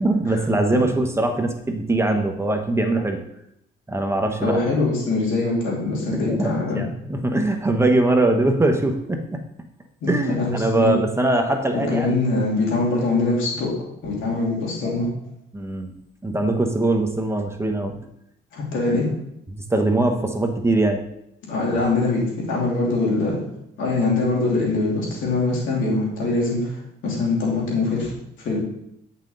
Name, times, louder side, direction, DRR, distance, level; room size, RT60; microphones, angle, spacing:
voice 1, 0.0-3.2 3.9-4.7 6.3-9.4 10.1-12.2 15.5-15.9 16.2-17.9 19.7-21.0, right 2 dB, 15° right, 4 dB, 1.0 m, -22 dB
voice 2, 4.4-6.8 10.0-11.0 11.7-13.7 14.0-15.1 18.5-19.1 21.5-23.4 23.8-28.1 28.4-28.6, left 3 dB, 80° left, -3 dB, 3.1 m, -23 dB
8.9 x 5.8 x 4.0 m, 0.76 s
cardioid pair, 90°, 20 cm